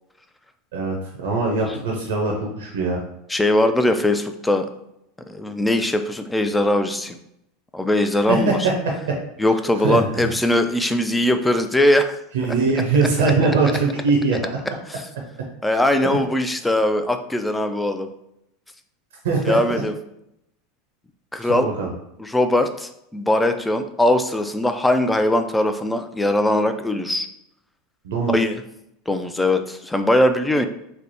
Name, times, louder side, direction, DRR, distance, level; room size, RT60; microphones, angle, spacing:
voice 1, 0.7-3.0 8.3-9.2 9.8-10.3 12.3-14.4 19.2-19.6 21.4-21.9 28.0-28.3, right 4 dB, 80° right, -1 dB, 0.7 m, -21 dB
voice 2, 3.3-4.7 5.3-7.2 7.7-8.6 9.4-12.2 14.9-15.0 15.6-18.1 19.5-19.9 21.3-21.7 22.2-27.3 28.3-28.6 29.1-30.7, left 1 dB, 10° left, 7 dB, 0.4 m, -20 dB
3.3 x 2.0 x 4.1 m, 0.80 s
hypercardioid pair, 95°, 0 cm